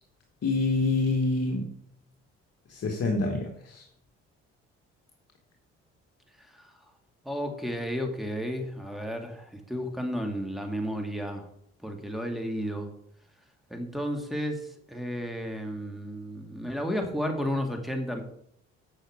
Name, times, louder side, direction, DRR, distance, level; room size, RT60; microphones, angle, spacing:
voice 1, 0.4-1.7 2.7-3.8, left 3 dB, 50° left, 2 dB, 1.4 m, -27 dB
voice 2, 6.4-6.8 7.2-11.5 11.8-12.9 13.7-18.2, equal, ahead, 4 dB, 2.2 m, -32 dB
8.2 x 6.3 x 5.0 m, 0.69 s
hypercardioid pair, 55°, 32 cm